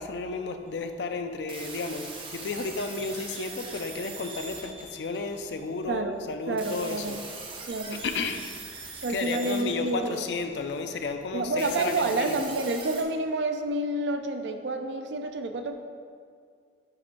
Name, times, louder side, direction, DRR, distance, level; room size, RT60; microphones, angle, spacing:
voice 1, 0.0-7.2 7.9-8.5 9.1-12.5, left 4 dB, 70° left, 7 dB, 0.4 m, -33 dB
sound 1, 1.5-5.7 6.6-10.8 11.6-13.0, right 3 dB, 30° right, 0.7 m, -42 dB
voice 2, 5.9-7.2 7.7-8.0 9.0-10.3 11.3-15.7, right 2 dB, 75° right, 7 dB, 0.5 m, -29 dB
9.6 x 4.5 x 2.5 m, 2.1 s
head